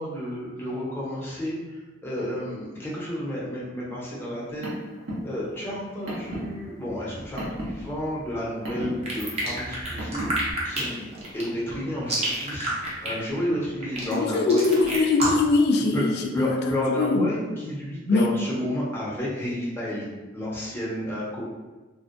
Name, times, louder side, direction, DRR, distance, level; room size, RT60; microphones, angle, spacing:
voice 1, 0.0-1.5 2.0-4.7 5.2-10.3 10.6-14.7 15.9-20.1 20.3-21.5, left 1 dB, 10° left, -6 dB, 0.6 m, -31 dB
Car, 4.3-10.5, equal, 75° right, 0.9 m, -36 dB
sound 1, 9.0-15.5, right 1 dB, 35° right, 0.6 m, -29 dB
voice 2, 14.1-16.6 16.9-17.3 18.1-18.3, left 3 dB, 60° left, 4 dB, 0.3 m, -22 dB
2.5 x 2.1 x 2.5 m, 1.2 s
head